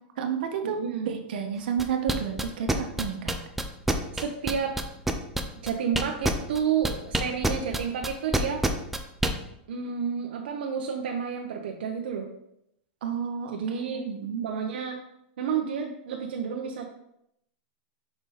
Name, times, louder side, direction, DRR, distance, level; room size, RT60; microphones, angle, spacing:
voice 1, 0.2-0.8 1.1-3.3 13.0-14.5, right 7 dB, 65° right, 4 dB, 1.0 m, -31 dB
voice 2, 0.7-1.2 4.1-4.7 5.6-8.6 9.7-12.3 13.5-14.0 14.4-15.0 15.4-16.9, right 7 dB, 85° right, 2 dB, 0.7 m, -30 dB
sound 1, 1.8-9.3, right 1 dB, 5° right, 0.4 m, -26 dB
5.3 x 4.8 x 3.9 m, 0.79 s
supercardioid pair, 170°, 5 cm